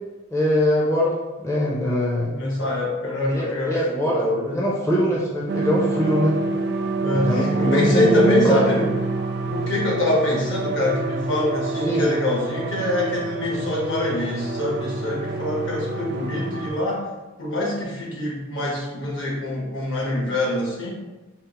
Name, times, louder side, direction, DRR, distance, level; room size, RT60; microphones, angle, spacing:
voice 1, 0.3-2.3 3.3-4.2 4.5-6.3 7.1-8.7 11.9-12.0, equal, 15° left, -5 dB, 0.5 m, -22 dB
voice 2, 2.3-4.6 7.0-8.9 9.4-17.0 17.4-20.9, left 1 dB, 65° left, -3 dB, 1.1 m, -24 dB
sound 1, 5.5-16.7, right 3 dB, 55° right, 0.4 m, -27 dB
4.3 x 2.0 x 4.0 m, 1.1 s
head